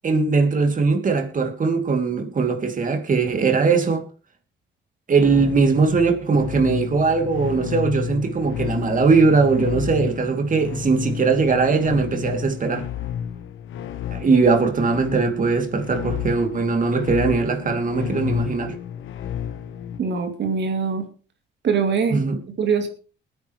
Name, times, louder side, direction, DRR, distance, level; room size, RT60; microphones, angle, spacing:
voice 1, 0.0-4.0 5.1-12.8 14.1-18.7 22.1-22.4, right 4 dB, 40° right, 2.8 m, -20 dB
sound 1, 5.2-20.0, left 9 dB, 80° left, 1.2 m, -31 dB
voice 2, 20.0-21.1 21.6-22.2 22.6-22.9, right 5 dB, 60° right, 2.7 m, -22 dB
22.0 x 9.6 x 3.2 m
cardioid pair, 90°, 20 cm